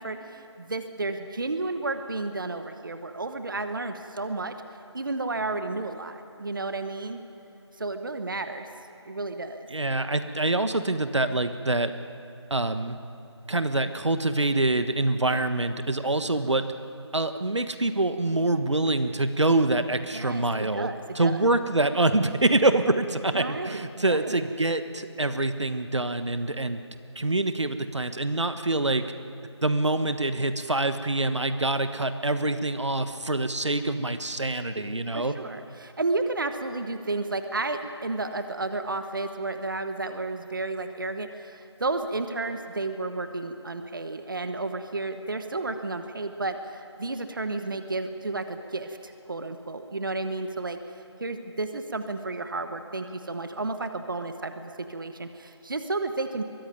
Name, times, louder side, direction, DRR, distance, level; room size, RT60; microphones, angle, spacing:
voice 1, 0.0-4.6 4.9-7.2 7.8-8.7 9.0-9.7 20.1-21.4 23.3-24.4 35.1-50.8 51.2-56.4, right 3 dB, 45° right, 8 dB, 1.1 m, -32 dB
voice 2, 9.7-11.9 12.5-13.0 13.5-16.6 17.1-20.9 21.1-26.8 27.1-29.0 29.6-35.3, right 2 dB, 75° right, 10 dB, 1.3 m, -25 dB
22.5 x 16.0 x 9.4 m, 2.9 s
figure-of-eight pair, 170°, 15 cm